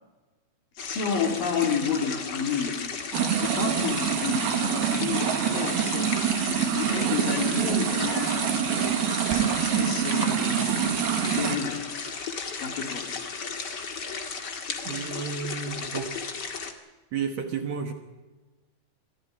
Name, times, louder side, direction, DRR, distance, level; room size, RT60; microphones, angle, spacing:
voice 1, 0.8-2.8 3.4-9.2 9.4-11.8 12.6-13.1, left 6 dB, 65° left, 2 dB, 4.7 m, -31 dB
sound 1, 0.8-16.7, left 5 dB, 40° left, 1.7 m, -35 dB
sound 2, 3.1-11.6, right 9 dB, 90° right, 3.7 m, -26 dB
voice 2, 14.8-16.1 17.1-17.9, right 6 dB, 55° right, 5 dB, 2.2 m, -32 dB
25.0 x 15.0 x 9.3 m, 1.2 s
omnidirectional pair, 4.3 m